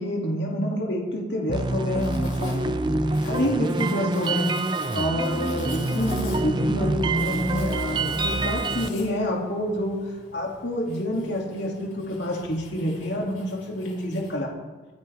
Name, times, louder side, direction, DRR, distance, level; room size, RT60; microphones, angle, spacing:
voice 1, 0.0-2.8 3.2-4.6 4.9-14.5, equal, 70° left, -1 dB, 2.7 m, -28 dB
sound 1, 1.5-8.9, right 2 dB, 25° right, 0.5 m, -26 dB
Writing, 2.0-14.3, left 2 dB, 45° left, 5.5 m, -44 dB
25.0 x 10.0 x 3.6 m, 1.3 s
head